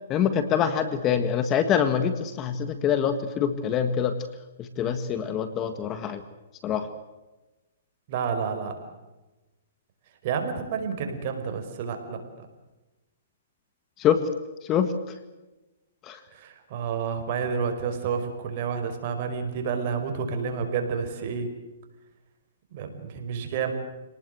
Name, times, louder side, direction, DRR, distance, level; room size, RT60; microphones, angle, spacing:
voice 1, 0.1-4.1 4.8-6.2 6.6-6.9 14.0-14.2 14.7-14.9 16.1-16.2, left 8 dB, 25° left, 10 dB, 1.6 m, -25 dB
voice 2, 8.1-8.9 10.2-12.2 16.3-21.5 22.7-23.7, right 6 dB, 45° right, 6 dB, 5.1 m, -30 dB
26.5 x 19.5 x 7.8 m, 1.1 s
hypercardioid pair, 155°, 0 cm